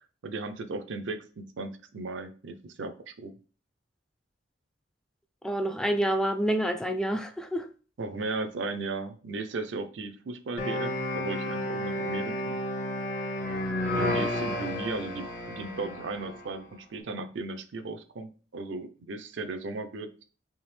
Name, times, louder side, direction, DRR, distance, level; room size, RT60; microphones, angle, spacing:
voice 1, 0.2-3.3 8.0-12.6 13.9-20.2, right 3 dB, 80° right, 9 dB, 0.5 m, -36 dB
voice 2, 5.4-7.7, right 1 dB, 5° left, 7 dB, 0.3 m, -28 dB
sound 1, 10.6-16.5, left 1 dB, 50° left, 0.7 m, -31 dB
3.5 x 2.7 x 3.1 m, 0.38 s
head